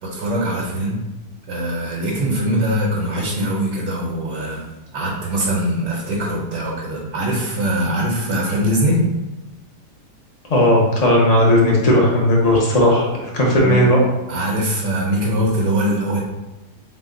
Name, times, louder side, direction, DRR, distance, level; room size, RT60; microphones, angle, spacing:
voice 1, 0.0-1.0 1.5-4.6 4.9-9.0 13.6-13.8 14.3-16.2, equal, 85° right, -4 dB, 1.4 m, -22 dB
voice 2, 10.5-13.1 13.3-14.0, left 1 dB, 55° left, -2 dB, 0.4 m, -15 dB
4.4 x 2.1 x 3.7 m, 1.0 s
omnidirectional pair, 1.8 m